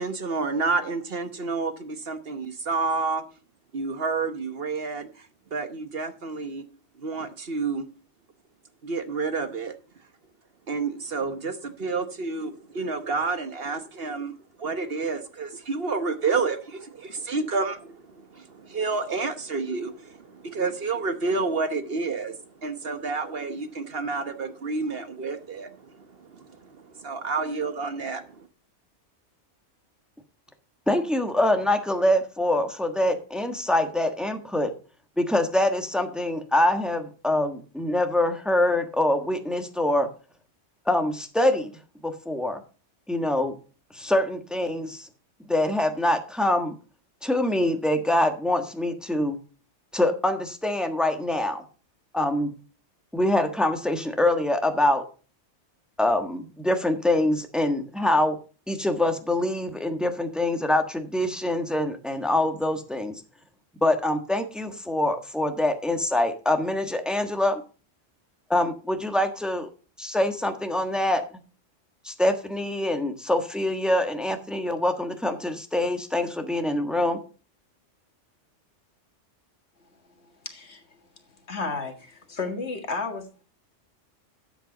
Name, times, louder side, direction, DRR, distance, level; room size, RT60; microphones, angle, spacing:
voice 1, 0.0-3.2 3.7-6.6 7.0-7.9 8.8-9.7 10.7-28.5, right 4 dB, 55° right, 1.2 m, -30 dB
voice 2, 30.9-34.7 35.2-40.1 40.9-41.7 42.0-42.6 43.1-43.6 43.9-45.1 45.5-46.7 47.2-49.4 49.9-51.6 52.1-52.5 53.1-55.0 56.0-58.4 58.7-63.2 63.8-67.6 68.5-69.7 70.0-71.2 72.0-77.2, left 1 dB, ahead, 1.3 m, -24 dB
voice 3, 80.4-81.0 81.5-83.4, left 4 dB, 60° left, 2.0 m, -33 dB
12.5 x 8.0 x 3.9 m
omnidirectional pair, 1.3 m